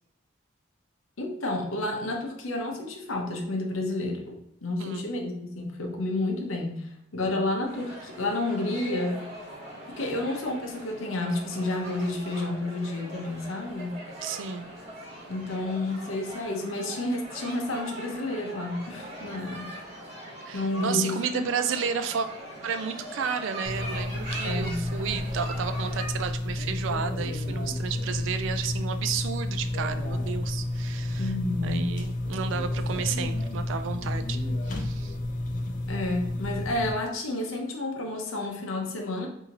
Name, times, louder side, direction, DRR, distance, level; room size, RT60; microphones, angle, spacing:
voice 1, 1.2-9.3 10.0-14.0 15.3-19.7 20.5-21.5 24.4-24.9 31.2-32.0 35.9-39.3, left 2 dB, 90° left, 2 dB, 0.7 m, -30 dB
sound 1, 7.6-26.1, equal, 35° right, 1.2 m, -41 dB
voice 2, 14.2-14.7 20.5-22.3 22.6-31.3 31.6-35.1, right 6 dB, 70° right, 10 dB, 0.3 m, -32 dB
sound 2, 23.6-36.9, left 1 dB, 40° left, 0.4 m, -31 dB
3.8 x 2.7 x 2.8 m, 0.83 s
head